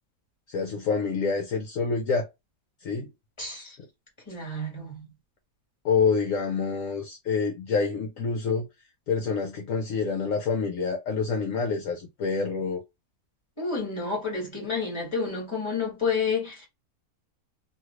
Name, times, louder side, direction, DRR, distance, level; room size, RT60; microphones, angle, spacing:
voice 1, 0.5-2.3 2.8-3.1 3.8-3.9 5.8-8.7 9.1-12.8, left 5 dB, 65° left, 1.0 m, -27 dB
voice 2, 3.4-3.7 4.3-5.0 13.6-16.7, left 4 dB, 20° left, 1.7 m, -30 dB
3.1 x 2.8 x 2.4 m
omnidirectional pair, 1.6 m